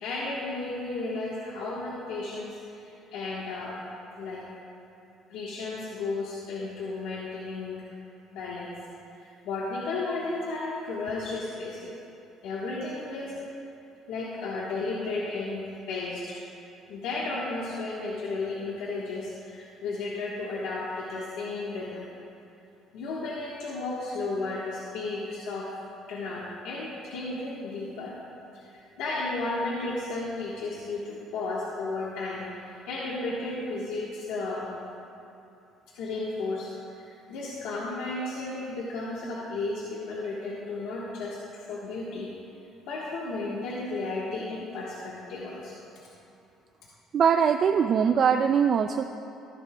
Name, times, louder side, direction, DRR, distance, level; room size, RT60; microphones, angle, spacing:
voice 1, 0.0-3.8 4.2-4.4 5.3-7.8 8.3-8.8 9.4-11.9 12.4-13.3 14.1-16.4 16.9-22.1 22.9-25.8 26.1-28.1 28.5-34.7 35.9-42.3 42.8-45.7, left 3 dB, 80° left, -5 dB, 1.3 m, -33 dB
voice 2, 47.1-49.1, right 7 dB, 45° right, 6 dB, 0.3 m, -22 dB
14.0 x 11.5 x 2.3 m, 2.7 s
cardioid pair, 120°, 0 cm